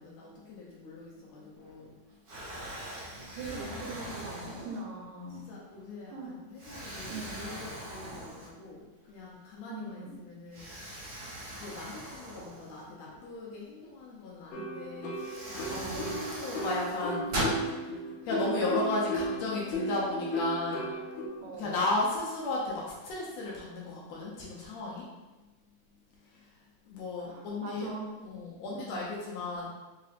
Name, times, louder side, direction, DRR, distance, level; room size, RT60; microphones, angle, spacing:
voice 1, 0.0-1.9 3.7-3.8 5.5-8.8 9.1-10.7 11.6-15.1 15.5-17.9 18.3-20.8 21.5-25.0 26.9-27.9 28.2-29.7, left 2 dB, 75° left, -4 dB, 1.8 m, -36 dB
Explosion, 1.6-1.9 2.3-5.1 5.7-5.9 6.6-8.8 9.2-9.3 10.5-13.2 14.6-14.7 15.1-17.6, right 1 dB, 50° right, 1.2 m, -39 dB
voice 2, 3.3-5.6 6.1-6.4 7.1-7.5 9.7-10.2 15.7-16.1 21.4-21.8 27.2-28.2 28.7-29.0, right 3 dB, 85° right, -1 dB, 2.1 m, -41 dB
sound 1, 14.5-21.3, equal, 90° left, 2.0 m, -35 dB
4.9 x 2.9 x 2.5 m, 1.1 s
omnidirectional pair, 3.4 m